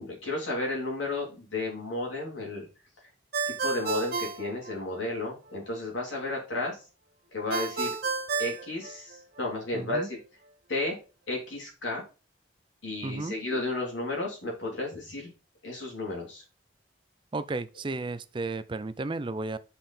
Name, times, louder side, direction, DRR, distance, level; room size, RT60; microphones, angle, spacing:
voice 1, 0.0-2.7 3.4-6.8 7.3-7.9 8.4-10.2 10.7-11.0 11.3-12.1 12.8-15.3 15.6-16.4, left 2 dB, 80° left, 3.2 m, -33 dB
Ringtone, 3.3-5.3 7.5-9.5, right 4 dB, 55° right, 0.9 m, -32 dB
voice 2, 9.7-10.1 13.0-13.4 17.3-19.6, right 3 dB, 25° right, 0.4 m, -33 dB
5.7 x 5.4 x 4.3 m
head